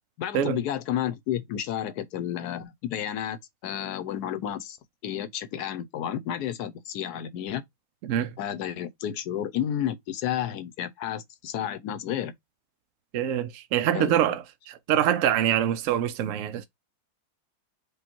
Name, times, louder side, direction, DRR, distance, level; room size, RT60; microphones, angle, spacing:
voice 1, 0.2-4.8 5.0-7.6 8.4-12.3 13.9-14.3, left 10 dB, 65° left, 1.1 m, -31 dB
voice 2, 8.0-8.3 13.1-16.7, right 10 dB, 75° right, 0.7 m, -25 dB
5.1 x 2.3 x 4.3 m
omnidirectional pair, 2.0 m